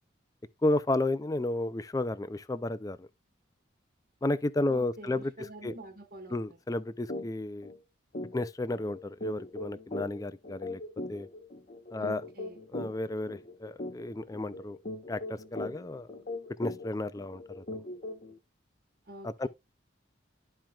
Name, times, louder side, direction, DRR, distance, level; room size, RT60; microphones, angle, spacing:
voice 1, 0.6-3.1 4.2-5.7 6.3-7.7 8.3-10.8 11.1-11.3 11.9-12.2 12.7-14.8 15.1-16.1 16.6-17.6 19.2-19.5, left 2 dB, 15° left, 0.4 m, -32 dB
voice 2, 4.7-6.4 12.0-12.6 19.0-19.5, right 1 dB, 50° right, 1.5 m, -46 dB
sound 1, 7.1-7.3 7.6-7.8 8.1-18.4, left 2 dB, 40° left, 1.0 m, -40 dB
12.0 x 4.5 x 2.4 m
head